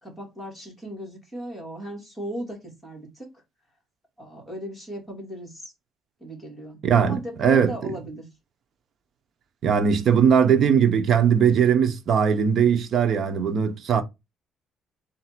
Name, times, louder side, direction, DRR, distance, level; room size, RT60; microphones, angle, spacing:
voice 1, 0.0-3.3 4.2-5.7 6.2-8.3, equal, 10° left, 2.1 m, -36 dB
voice 2, 6.8-7.9 9.6-14.0, right 7 dB, 45° right, 0.7 m, -20 dB
4.1 x 2.7 x 4.3 m
cardioid pair, 145°, 0 cm